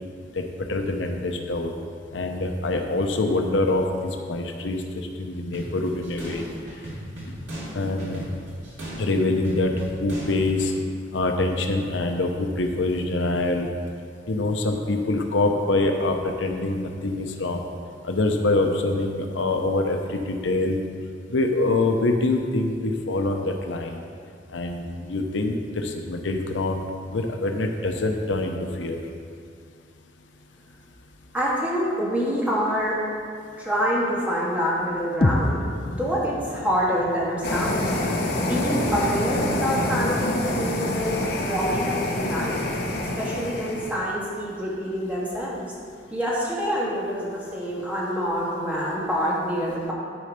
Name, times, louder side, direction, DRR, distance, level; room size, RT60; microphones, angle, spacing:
voice 1, 0.3-1.7 2.1-3.9 4.3-6.5 7.7-8.2 9.0-10.7 11.1-13.7 14.3-17.6 18.0-20.8 21.3-24.0 24.5-26.8 27.1-29.0, left 2 dB, 85° left, 4 dB, 0.8 m, -25 dB
sound 1, 5.5-10.7, right 1 dB, 75° right, 2.2 m, -37 dB
voice 2, 31.3-33.0 33.6-35.6 35.9-37.9 38.4-45.7 46.1-49.9, equal, 10° right, -6 dB, 1.7 m, -26 dB
sound 2, 35.2-39.2, left 2 dB, 30° left, 0.4 m, -29 dB
sound 3, 37.4-43.9, left 1 dB, 60° left, 1.1 m, -26 dB
12.0 x 4.3 x 5.1 m, 2.3 s
head